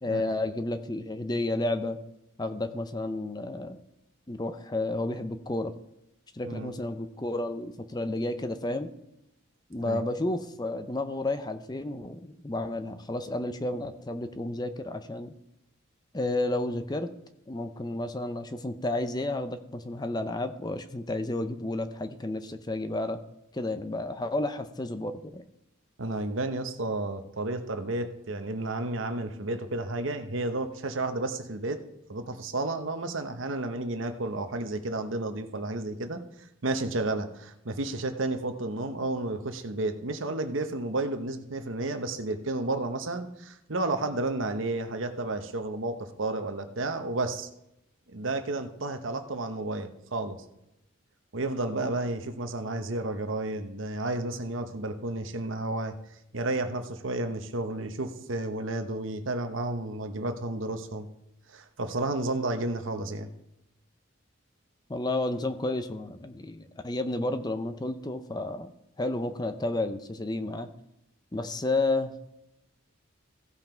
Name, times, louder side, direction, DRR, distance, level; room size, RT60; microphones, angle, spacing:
voice 1, 0.0-2.0 2.4-3.8 4.3-5.7 6.3-8.9 9.7-15.3 16.1-17.1 17.5-23.2 23.5-25.4 64.9-68.7 69.0-70.7 71.3-72.1, left 2 dB, 20° left, 10 dB, 0.5 m, -31 dB
voice 2, 26.0-31.8 32.1-36.2 36.6-47.5 48.1-50.4 51.3-56.0 56.3-61.1 61.5-63.3, right 2 dB, 70° right, 8 dB, 1.0 m, -32 dB
15.5 x 5.7 x 4.5 m, 0.82 s
head